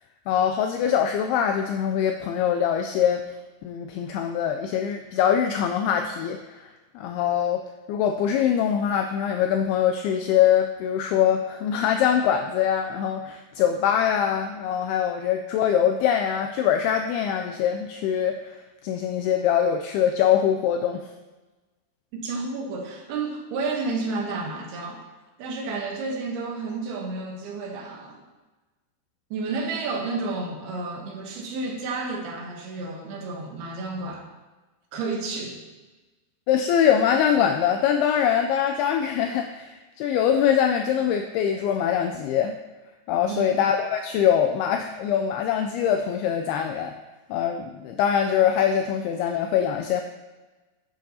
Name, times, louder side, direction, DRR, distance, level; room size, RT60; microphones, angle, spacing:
voice 1, 0.3-3.2 3.6-6.7 7.0-21.1 36.5-42.6 43.1-46.9 47.3-50.0, left 9 dB, 85° left, 5 dB, 2.2 m, -23 dB
voice 2, 22.1-25.0 25.4-28.2 29.3-34.2 34.9-35.6 43.3-43.6, right 3 dB, 70° right, 1 dB, 2.9 m, -31 dB
11.0 x 9.2 x 2.8 m, 1.2 s
omnidirectional pair, 5.0 m